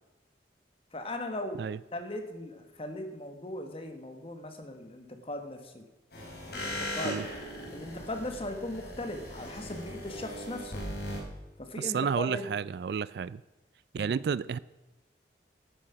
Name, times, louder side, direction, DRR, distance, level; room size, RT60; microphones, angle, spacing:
voice 1, 0.9-1.6 1.9-5.8 6.5-7.2 7.7-10.8 11.6-12.4 13.9-14.2, left 1 dB, 30° left, 1.4 m, -38 dB
sound 1, 6.1-11.2, left 1 dB, 60° left, 4.5 m, -39 dB
voice 2, 11.8-13.4 13.9-14.6, right 6 dB, 60° right, 0.3 m, -31 dB
11.5 x 8.8 x 5.8 m
head